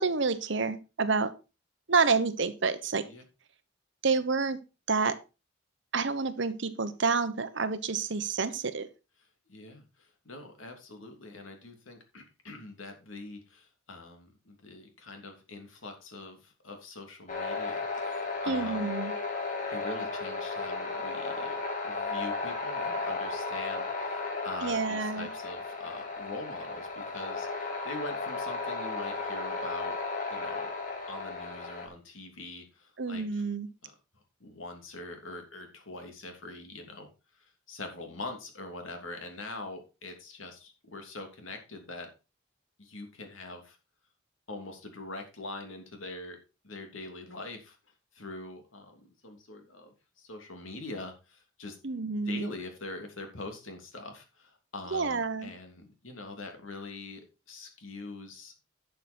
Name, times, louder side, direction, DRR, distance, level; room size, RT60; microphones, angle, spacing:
voice 1, 0.0-1.3 1.9-3.0 4.0-4.6 4.9-5.2 5.9-8.9 18.5-19.1 24.6-25.3 33.0-33.7 51.8-52.5 54.9-55.5, right 4 dB, 60° right, 12 dB, 1.0 m, -28 dB
voice 2, 9.5-18.9 19.7-30.0 30.3-30.7 31.1-33.4 33.8-33.9 34.4-37.1 37.4-42.1 42.8-43.8 44.5-46.4 46.6-47.8 48.1-51.8 52.2-57.2 57.5-58.5, left 2 dB, 75° left, 4 dB, 2.9 m, -43 dB
sound 1, 17.3-31.9, left 3 dB, 40° left, 3.0 m, -34 dB
11.5 x 6.7 x 4.4 m, 0.30 s
head